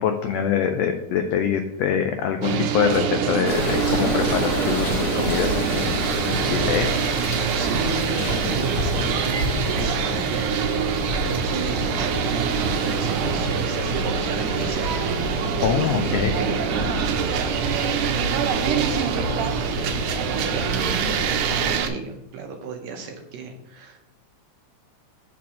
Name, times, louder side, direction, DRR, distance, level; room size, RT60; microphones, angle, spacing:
voice 1, 0.0-6.9 15.6-16.3, left 8 dB, 85° left, 6 dB, 1.4 m, -24 dB
sound 1, 2.4-21.9, right 8 dB, 85° right, 2.2 m, -25 dB
sound 2, 3.4-21.8, left 1 dB, 50° left, 2.7 m, -29 dB
voice 2, 7.6-15.1 15.4-24.0, right 4 dB, 70° right, 3 dB, 1.9 m, -34 dB
5.7 x 4.3 x 6.2 m, 0.85 s
omnidirectional pair, 3.5 m